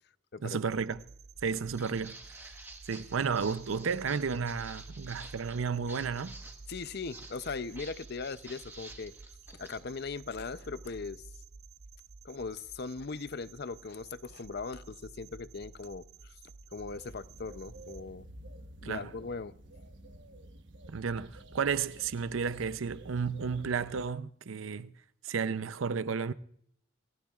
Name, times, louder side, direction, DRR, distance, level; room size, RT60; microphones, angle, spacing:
voice 1, 0.4-1.0 1.4-2.2 2.9-6.3 18.8-19.1 20.9-24.9 25.2-26.3, right 5 dB, 85° right, 0.6 m, -32 dB
sound 1, 0.7-18.0, right 3 dB, 35° right, 0.5 m, -52 dB
Walk footsteps, 1.5-9.8, right 2 dB, 10° right, 1.2 m, -51 dB
voice 2, 6.7-9.1 9.5-11.2 12.2-16.4 16.7-18.3 18.8-19.5, left 4 dB, 55° left, 0.6 m, -39 dB
sound 2, 16.8-24.0, right 1 dB, 60° right, 1.1 m, -51 dB
27.5 x 15.0 x 2.4 m
head